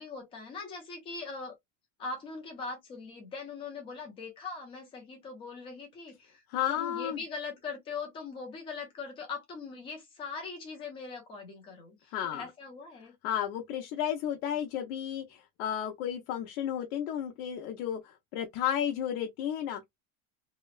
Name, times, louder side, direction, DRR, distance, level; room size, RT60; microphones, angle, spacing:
voice 1, 0.0-1.5 2.0-6.4 6.7-13.1, left 4 dB, 15° left, 0.3 m, -41 dB
voice 2, 6.5-7.2 12.1-12.5 13.2-19.9, left 10 dB, 90° left, 0.7 m, -33 dB
2.9 x 2.0 x 2.3 m
cardioid pair, 175°, 43 cm